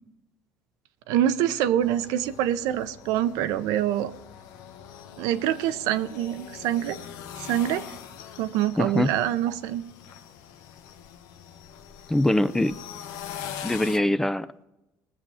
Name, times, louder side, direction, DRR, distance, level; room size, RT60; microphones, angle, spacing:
voice 1, 1.1-4.1 5.2-7.0 7.4-7.9 8.4-9.8, right 11 dB, 80° right, 11 dB, 0.7 m, -25 dB
sound 1, 1.8-14.0, left 9 dB, 80° left, 1.0 m, -43 dB
voice 2, 8.8-9.1 12.1-12.8 13.6-14.5, left 1 dB, 5° left, 14 dB, 0.4 m, -23 dB
20.0 x 7.4 x 4.9 m, 0.95 s
cardioid pair, 120°, 6 cm